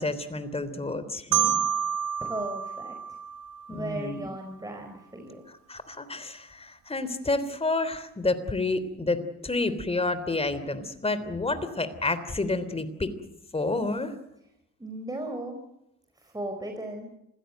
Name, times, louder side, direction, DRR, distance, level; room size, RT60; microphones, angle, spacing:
voice 1, 0.0-1.6 3.7-4.3 5.5-13.1 13.5-14.2, left 2 dB, 20° left, 12 dB, 3.4 m, -29 dB
Marimba xylophone, 1.3-4.2, right 8 dB, 80° right, 1.0 m, -29 dB
voice 2, 2.2-3.0 3.7-5.4 14.8-15.6 16.2-17.1, right 1 dB, 10° right, 4 dB, 4.5 m, -36 dB
27.0 x 16.5 x 9.4 m, 0.85 s
cardioid pair, 90°, 30 cm